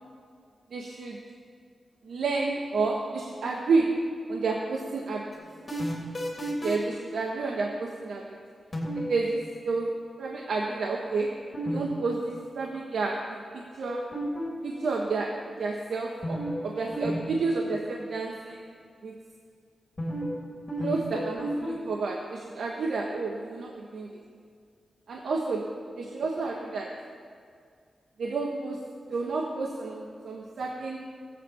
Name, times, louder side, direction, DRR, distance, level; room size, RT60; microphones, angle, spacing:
voice 1, 0.7-1.2 2.0-3.9 4.3-5.2 6.6-8.4 8.9-9.9 10.2-11.3 11.6-14.0 14.6-15.3 15.6-18.6 19.0-19.1 20.8-24.1 25.1-25.6 26.0-26.9 28.2-28.8 29.1-31.0, right 3 dB, 80° right, 0 dB, 1.1 m, -30 dB
sound 1, 5.3-7.0 8.7-9.1 11.5-11.8 12.0-12.1 13.9-14.7 16.2-16.6 16.9-17.2 17.4-17.5 20.0-20.4 20.7-21.8, equal, 20° left, 3.1 m, -31 dB
19.0 x 8.3 x 5.6 m, 2.2 s
wide cardioid pair, 170°, 0 cm